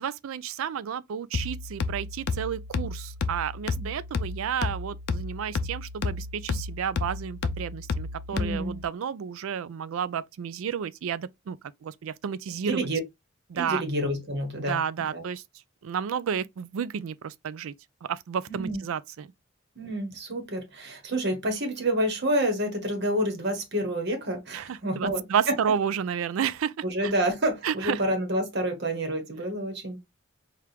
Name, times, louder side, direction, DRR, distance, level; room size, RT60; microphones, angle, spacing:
voice 1, 0.0-12.9 13.5-13.8 14.6-15.4 15.8-17.7 18.1-19.3 24.5-26.7 27.0-27.1 27.6-28.0, right 8 dB, 75° right, 0.4 m, -31 dB
sound 1, 1.3-8.8, left 3 dB, 55° left, 0.5 m, -32 dB
voice 2, 8.3-8.8 12.7-13.0 13.5-14.8 15.1-15.2 18.5-18.8 19.8-25.5 26.8-30.0, right 1 dB, 55° right, 1.2 m, -28 dB
4.4 x 2.4 x 3.3 m
head